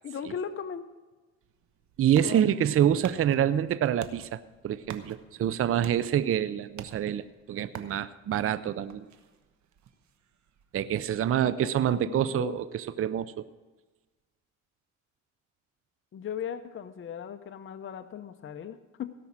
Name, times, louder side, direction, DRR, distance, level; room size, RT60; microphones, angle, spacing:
voice 1, 0.0-0.8 2.2-2.9 11.4-12.6 16.1-19.1, left 8 dB, 45° left, 9 dB, 0.7 m, -38 dB
sound 1, 1.4-12.9, right 8 dB, 70° right, 1.2 m, -50 dB
voice 2, 2.0-9.1 10.7-13.5, right 10 dB, 45° right, 15 dB, 0.5 m, -27 dB
17.0 x 6.0 x 7.3 m, 1.3 s
cardioid pair, 90°, 30 cm